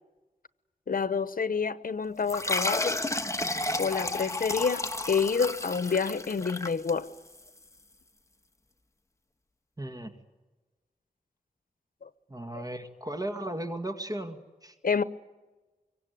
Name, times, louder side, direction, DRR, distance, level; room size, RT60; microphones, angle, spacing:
voice 1, 0.9-3.0 3.8-7.1 12.0-12.1 12.5-12.6 14.8-15.0, left 5 dB, 70° left, 1.0 m, -28 dB
sound 1, 2.3-7.4, left 2 dB, 20° left, 1.4 m, -32 dB
voice 2, 9.8-10.1 12.3-14.8, right 1 dB, 25° right, 2.0 m, -36 dB
25.5 x 23.5 x 9.4 m
wide cardioid pair, 100°, 15 cm